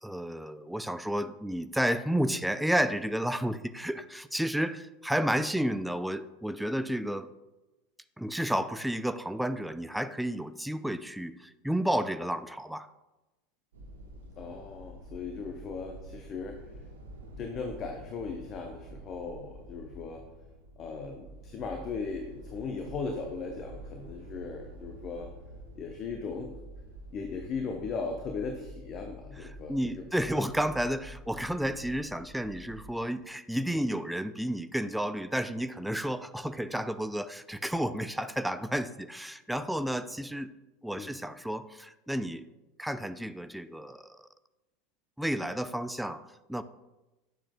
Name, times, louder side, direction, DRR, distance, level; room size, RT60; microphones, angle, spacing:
voice 1, 0.0-7.3 8.2-12.9 29.7-40.5 40.8-42.4 42.8-44.2 45.2-46.2 46.5-46.6, equal, ahead, 12 dB, 0.3 m, -31 dB
sound 1, 13.7-32.9, right 1 dB, 70° right, 0.9 m, -48 dB
voice 2, 14.4-16.6 17.4-20.2 20.8-25.3 25.8-26.6 27.1-30.0 30.3-30.4 33.7-33.8 41.0-41.1, left 4 dB, 35° left, 4 dB, 0.7 m, -38 dB
9.0 x 7.2 x 2.3 m, 1.0 s
figure-of-eight pair, 80°, 0 cm